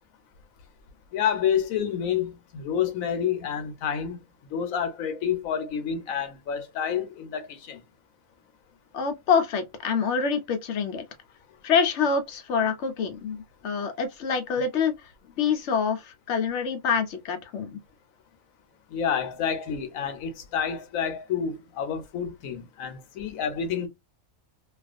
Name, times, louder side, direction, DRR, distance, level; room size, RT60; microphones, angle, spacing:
voice 1, 1.1-4.2 4.5-7.8 18.9-23.9, left 8 dB, 85° left, 1.1 m, -29 dB
voice 2, 8.9-11.0 11.6-14.9 15.4-17.8, left 6 dB, 65° left, 0.9 m, -26 dB
2.4 x 2.4 x 2.4 m
omnidirectional pair, 1.4 m